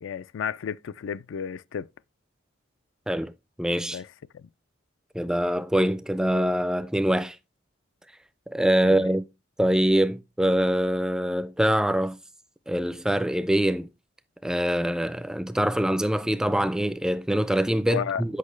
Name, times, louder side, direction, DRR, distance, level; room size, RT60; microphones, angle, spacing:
voice 1, 0.0-1.9 3.9-4.1 4.3-4.5 8.8-9.1 17.9-18.2, left 7 dB, 80° left, 0.3 m, -32 dB
voice 2, 3.6-4.0 5.1-7.4 8.5-9.3 9.6-12.2 12.7-13.9 14.4-18.4, equal, 5° right, 0.3 m, -24 dB
8.5 x 5.4 x 3.1 m
head